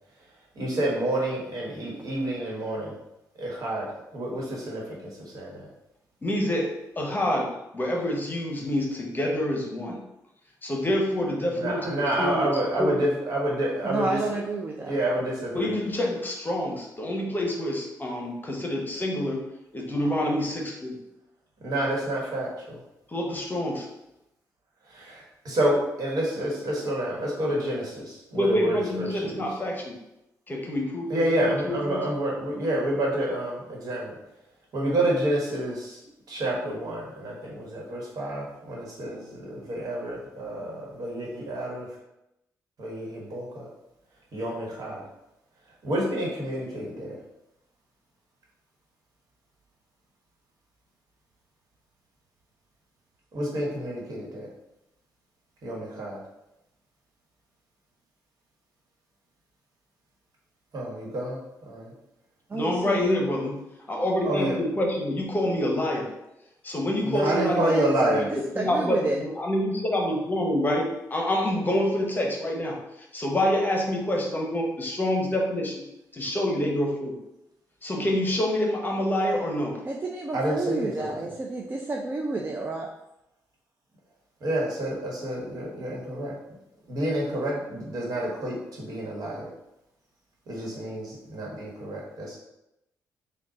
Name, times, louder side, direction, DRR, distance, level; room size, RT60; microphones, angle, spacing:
voice 1, 0.5-2.9 3.4-3.9 4.1-5.0 5.3-5.7 11.5-14.2 14.9-15.8 21.6-22.8 24.9-29.4 31.1-34.1 34.7-36.0 36.3-41.9 42.8-43.7 44.3-45.0 45.8-47.2 53.3-54.5 55.6-56.2 60.7-61.4 61.7-61.9 64.2-64.6 67.0-68.3 80.3-81.2 84.4-86.3 86.9-89.5 90.5-92.4, right 1 dB, 65° right, -3 dB, 1.3 m, -29 dB
voice 2, 6.2-6.7 7.0-10.0 10.6-13.0 15.5-19.5 19.7-21.0 23.1-23.9 28.3-30.0 30.5-32.0 62.5-63.6 63.9-66.1 66.6-68.2 68.5-72.8 73.1-75.7 76.1-77.1 77.8-79.7, left 1 dB, 30° left, 0 dB, 0.9 m, -27 dB
voice 3, 13.8-15.0 62.5-63.1 67.1-68.3 68.6-69.2 79.8-82.9, right 3 dB, 30° right, 1 dB, 0.4 m, -30 dB
3.8 x 2.3 x 3.7 m, 0.88 s
cardioid pair, 75°, 7 cm